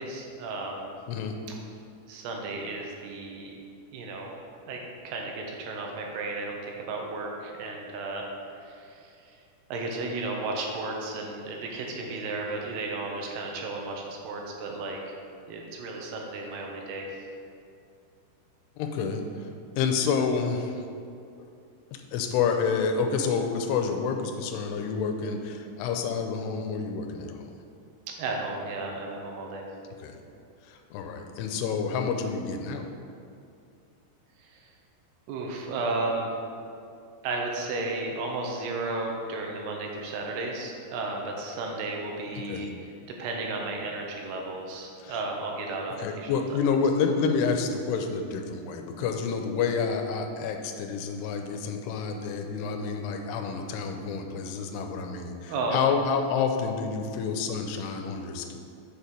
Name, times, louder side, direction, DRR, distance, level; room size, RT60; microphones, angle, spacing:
voice 1, 0.0-0.9 2.1-3.5 3.9-4.3 4.6-4.8 5.0-9.4 9.7-15.0 15.5-17.1 28.2-29.6 34.4-34.6 35.3-36.3 37.2-42.7 43.2-46.4 55.5-55.8, right 3 dB, 80° right, 0 dB, 2.8 m, -33 dB
voice 2, 18.8-19.5 19.8-20.8 21.4-21.5 21.9-27.5 30.0-30.2 30.7-32.9 42.4-42.7 45.0-45.2 46.0-58.6, left 5 dB, 85° left, 5 dB, 2.7 m, -29 dB
6.9 x 4.6 x 5.1 m, 2.5 s
omnidirectional pair, 4.7 m